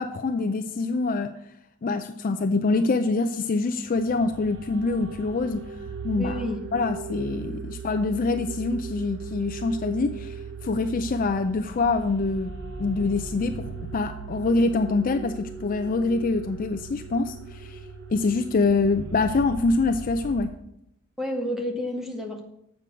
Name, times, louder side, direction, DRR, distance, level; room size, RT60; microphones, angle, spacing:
voice 1, 0.0-1.3 1.8-5.6 6.0-6.4 6.7-10.4 10.6-12.5 12.8-17.8 18.1-20.5, left 3 dB, 40° left, 8 dB, 0.4 m, -25 dB
sound 1, 3.9-20.4, right 5 dB, 55° right, 0.9 m, -38 dB
voice 2, 6.2-6.6 21.2-22.4, left 1 dB, ahead, 2 dB, 1.0 m, -30 dB
7.5 x 5.2 x 6.8 m, 0.78 s
head